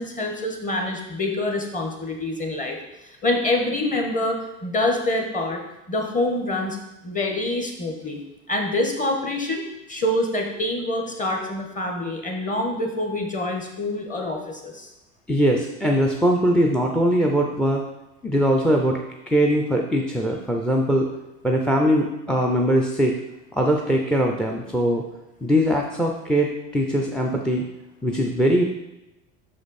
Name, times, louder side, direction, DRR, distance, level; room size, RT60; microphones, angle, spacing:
voice 1, 0.0-5.6 5.9-6.8 7.0-8.2 8.5-9.6 9.9-14.9, left 2 dB, 25° left, 2 dB, 1.2 m, -26 dB
voice 2, 15.3-17.8 18.2-19.0 19.3-21.1 21.4-23.1 23.5-25.0 25.4-27.6 28.0-28.6, equal, 5° left, 1 dB, 0.4 m, -21 dB
6.0 x 5.1 x 4.1 m, 0.94 s
supercardioid pair, 130°, 33 cm